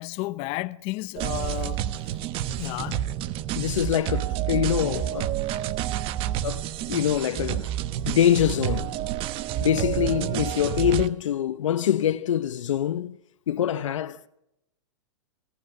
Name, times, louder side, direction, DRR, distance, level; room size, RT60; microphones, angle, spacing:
voice 1, 0.0-2.2 2.6-3.2, left 19 dB, 40° left, 0.8 m, -33 dB
sound 1, 1.2-11.1, right 12 dB, 35° right, 1.1 m, -29 dB
voice 2, 3.5-5.4 6.4-6.6 6.9-7.7 8.0-9.0 9.6-13.2 13.5-14.3, left 10 dB, 75° left, 1.0 m, -24 dB
24.5 x 18.0 x 7.9 m
hypercardioid pair, 125°, 16 cm